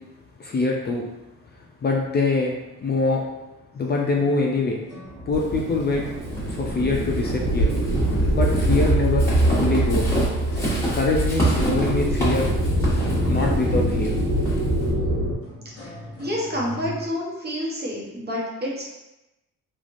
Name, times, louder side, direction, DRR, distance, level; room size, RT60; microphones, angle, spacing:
voice 1, 0.4-1.1 1.8-2.5 2.8-3.2 3.7-4.8 5.3-6.0 6.5-7.7 8.3-10.1 10.9-12.4 13.3-14.1, left 3 dB, 35° left, -1 dB, 0.4 m, -24 dB
sound 1, 3.9-17.0, left 2 dB, 50° left, 1.0 m, -43 dB
sound 2, 5.1-15.3, right 1 dB, 65° right, 1.3 m, -24 dB
Walk footsteps / Squeak, 5.3-14.9, right 1 dB, 10° left, 1.3 m, -27 dB
voice 2, 16.2-18.9, left 1 dB, 35° right, -4 dB, 1.0 m, -28 dB
3.1 x 2.4 x 2.5 m, 1.0 s
cardioid pair, 90°, 30 cm